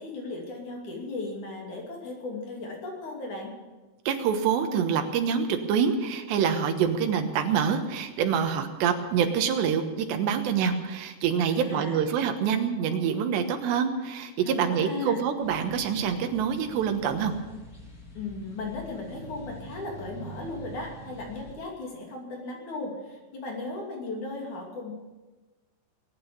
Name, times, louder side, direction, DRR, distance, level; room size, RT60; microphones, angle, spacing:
voice 1, 0.0-3.5 11.4-12.0 14.4-15.2 18.1-24.9, left 3 dB, 50° left, -1 dB, 3.9 m, -36 dB
voice 2, 4.1-17.3, right 7 dB, 90° right, 6 dB, 3.4 m, -26 dB
sound 1, 15.4-21.6, right 1 dB, 25° left, 2.9 m, -46 dB
21.0 x 9.2 x 7.0 m, 1.2 s
omnidirectional pair, 4.9 m